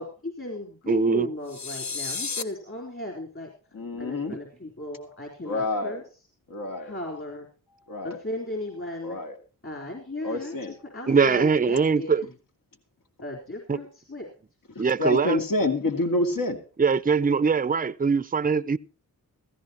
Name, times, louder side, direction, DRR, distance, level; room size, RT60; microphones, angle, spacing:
voice 1, 0.0-3.5 4.0-6.2 6.8-7.5 8.0-9.2 9.6-12.3 13.2-14.3, left 1 dB, 35° left, 3.9 m, -36 dB
voice 2, 0.9-1.3 4.3-4.4 11.1-12.2 13.7-13.8 14.8-15.4 16.8-18.8, right 5 dB, 25° right, 0.6 m, -22 dB
sound 1, 1.5-2.4, left 4 dB, 50° left, 1.3 m, -32 dB
voice 3, 3.7-4.3 5.4-6.0 6.5-6.9 7.9-8.2 9.0-9.3 10.2-10.7 14.7-16.6, left 2 dB, 65° left, 2.6 m, -27 dB
15.5 x 15.5 x 2.9 m
cardioid pair, 55°, 36 cm